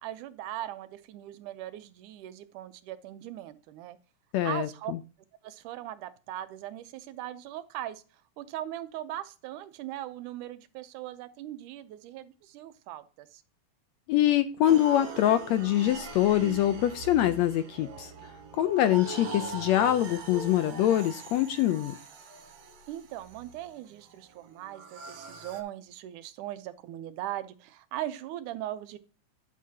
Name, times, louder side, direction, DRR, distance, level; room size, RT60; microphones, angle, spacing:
voice 1, 0.0-4.0 4.4-4.9 5.4-13.4 22.9-29.0, right 13 dB, 80° right, 2.2 m, -39 dB
voice 2, 4.3-5.0 14.1-18.1 18.6-21.9, left 12 dB, 80° left, 1.6 m, -24 dB
sound 1, 14.6-25.6, right 4 dB, 65° right, 2.1 m, -42 dB
10.5 x 7.4 x 2.8 m
omnidirectional pair, 3.6 m